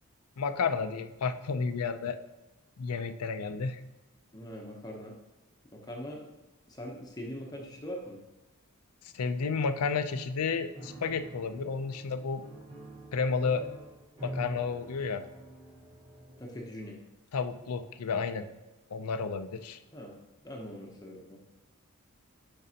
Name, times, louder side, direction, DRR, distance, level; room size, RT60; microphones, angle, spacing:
voice 1, 0.4-2.2 2.8-3.8 9.1-12.4 13.1-13.6 14.2-15.2 17.3-18.5 18.9-19.8, left 5 dB, 90° left, 10 dB, 0.5 m, -31 dB
voice 2, 4.3-5.1 5.7-6.3 6.7-8.2 16.4-17.0 19.9-20.2 20.4-21.4, equal, 15° left, 0 dB, 0.7 m, -42 dB
Piano, 10.7-16.7, right 1 dB, 25° right, 1.9 m, -46 dB
9.0 x 5.3 x 2.8 m, 1.1 s
head